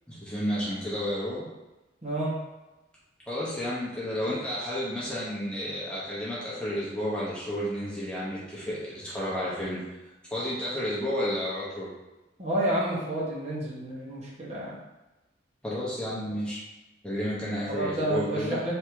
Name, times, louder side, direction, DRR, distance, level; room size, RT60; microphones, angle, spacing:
voice 1, 0.1-1.5 3.3-11.9 15.6-16.6 17.0-18.6, equal, 5° left, -9 dB, 0.8 m, -31 dB
voice 2, 2.0-2.3 12.4-14.8 17.7-18.7, right 1 dB, 35° right, -6 dB, 1.1 m, -30 dB
3.5 x 2.7 x 4.6 m, 1.1 s
head